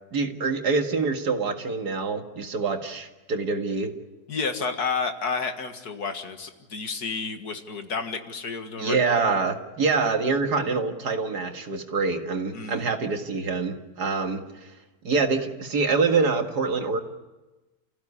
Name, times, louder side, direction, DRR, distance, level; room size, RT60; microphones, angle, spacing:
voice 1, 0.1-3.9 8.8-14.7 15.0-17.0, right 4 dB, 85° right, 5 dB, 2.4 m, -25 dB
voice 2, 4.3-9.2 12.5-12.8, left 5 dB, 75° left, 7 dB, 2.3 m, -31 dB
30.0 x 15.5 x 9.8 m, 1.1 s
omnidirectional pair, 1.7 m